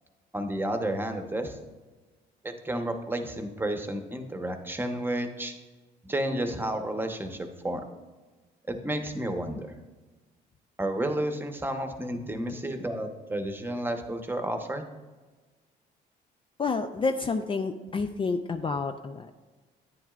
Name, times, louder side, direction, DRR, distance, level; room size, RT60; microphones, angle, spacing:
voice 1, 0.3-1.6 2.4-5.5 6.0-7.8 8.7-9.7 10.8-14.9, right 1 dB, 10° right, 5 dB, 1.0 m, -31 dB
voice 2, 16.6-19.5, left 4 dB, 30° left, 7 dB, 0.5 m, -29 dB
10.5 x 9.3 x 2.5 m, 1.3 s
cardioid pair, 90°, 19 cm